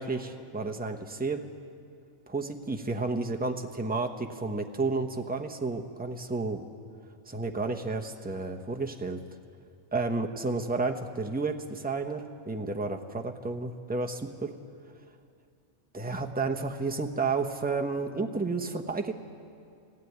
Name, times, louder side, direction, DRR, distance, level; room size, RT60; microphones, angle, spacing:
voice 1, 0.0-1.5 2.3-6.7 7.3-9.2 9.9-14.6 15.9-19.1, right 3 dB, 10° right, 3 dB, 0.9 m, -31 dB
18.5 x 16.5 x 9.4 m, 2.4 s
omnidirectional pair, 1.3 m